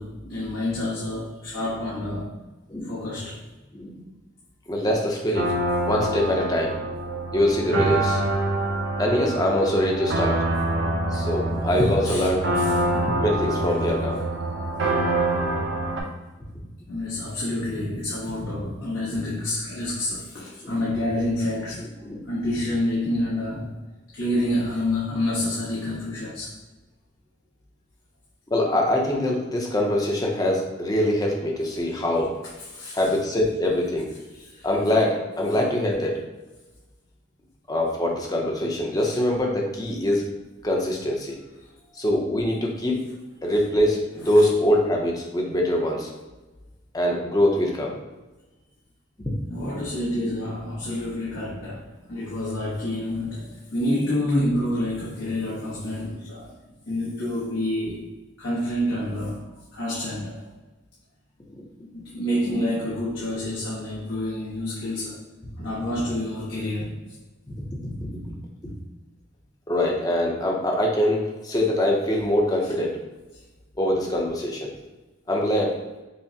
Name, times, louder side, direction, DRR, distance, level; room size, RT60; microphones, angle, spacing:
voice 1, 0.0-2.4 2.8-3.4 7.1-7.4 8.3-9.0 12.0-12.3 12.5-12.8 16.9-21.9 22.3-23.8 24.1-26.5 32.6-33.0 34.3-34.7 39.0-39.1 41.6-41.7 44.2-44.3 49.5-56.5 56.9-58.1 58.4-60.4 61.9-65.2 65.6-67.2 72.6-72.7, left 1 dB, 80° left, -7 dB, 0.8 m, -28 dB
voice 2, 4.7-5.5 5.9-6.9 7.3-8.2 9.0-10.4 11.1-12.5 12.8-14.2 20.6-20.8 22.0-22.2 28.5-32.4 32.9-34.1 34.6-36.2 37.7-40.3 40.6-41.4 42.0-43.0 43.4-46.1 46.9-48.0 49.2-49.3 50.1-50.3 61.5-61.7 62.4-62.6 67.5-68.3 68.6-68.7 69.7-73.0 73.8-74.7 75.3-75.8, left 1 dB, 20° left, 0 dB, 0.5 m, -23 dB
sound 1, 5.3-16.0, right 2 dB, 65° right, 0.6 m, -26 dB
5.6 x 2.0 x 2.7 m, 1.1 s
head